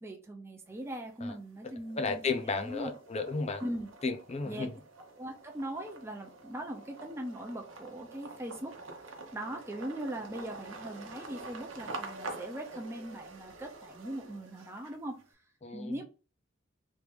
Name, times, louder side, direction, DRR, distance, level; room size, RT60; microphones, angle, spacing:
voice 1, 0.0-2.9 3.6-3.9 4.4-4.7 5.2-8.7 9.3-15.2 15.7-16.0, right 1 dB, 15° right, 0.5 m, -40 dB
sound 1, 0.7-1.3 1.7-15.2, right 2 dB, 90° right, 0.8 m, -47 dB
voice 2, 2.0-3.6 4.0-4.7 15.6-16.0, left 4 dB, 35° left, 0.5 m, -33 dB
3.2 x 2.5 x 3.3 m
head